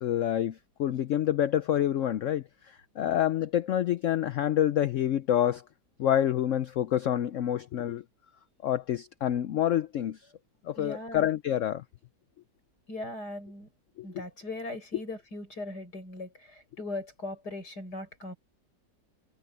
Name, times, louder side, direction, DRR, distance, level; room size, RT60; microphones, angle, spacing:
voice 1, 0.0-5.6 6.0-8.0 8.6-10.2 10.6-11.8 14.0-14.1, left 11 dB, 90° left, 0.6 m, -27 dB
voice 2, 10.8-11.2 12.9-13.7 14.0-18.4, left 2 dB, 60° left, 7.6 m, -39 dB
omnidirectional pair, 1.9 m